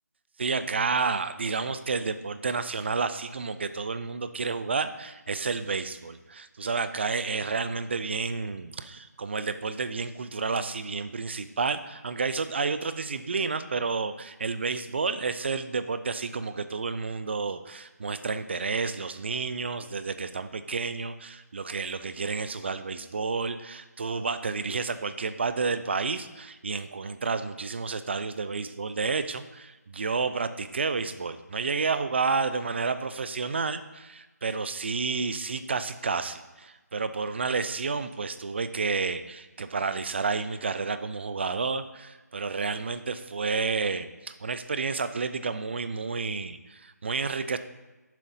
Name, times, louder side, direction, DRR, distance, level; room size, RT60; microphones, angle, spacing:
voice 1, 0.4-47.6, right 4 dB, 40° right, 12 dB, 0.4 m, -30 dB
7.4 x 3.8 x 5.5 m, 1.1 s
figure-of-eight pair, 165°, 10 cm